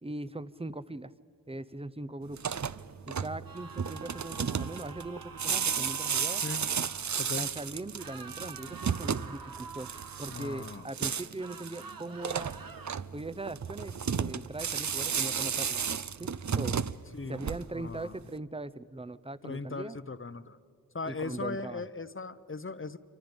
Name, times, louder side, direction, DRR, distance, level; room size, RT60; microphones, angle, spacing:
voice 1, 0.0-1.1 1.5-2.4 3.1-6.4 7.3-9.9 10.2-12.6 13.1-15.8 16.2-16.8 17.2-20.0 21.1-21.8, right 2 dB, 15° right, 15 dB, 0.7 m, -40 dB
sound 1, 2.3-18.0, right 7 dB, 55° right, 0.6 m, -33 dB
sound 2, 3.5-7.1 8.0-10.9 11.4-12.9, right 5 dB, 70° right, 1.2 m, -47 dB
voice 2, 7.2-7.5 10.3-10.9 17.1-17.5 17.7-18.2 19.4-20.6 20.9-23.0, left 3 dB, 35° left, 14 dB, 0.8 m, -38 dB
27.0 x 25.0 x 5.3 m, 2.4 s
wide cardioid pair, 55°, 36 cm